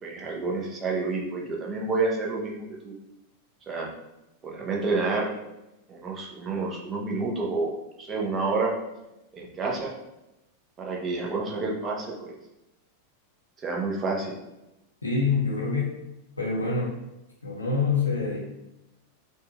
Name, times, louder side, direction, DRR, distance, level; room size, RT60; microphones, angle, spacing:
voice 1, 0.0-2.9 3.7-3.9 4.4-5.3 5.9-7.7 8.0-8.7 9.3-9.9 10.8-12.3 13.6-14.3, right 3 dB, 25° right, -1 dB, 0.7 m, -29 dB
voice 2, 15.0-16.0 16.4-17.0 17.4-18.4, left 4 dB, 80° left, -2 dB, 0.5 m, -26 dB
3.9 x 2.4 x 2.4 m, 0.93 s
figure-of-eight pair, 90°, 0 cm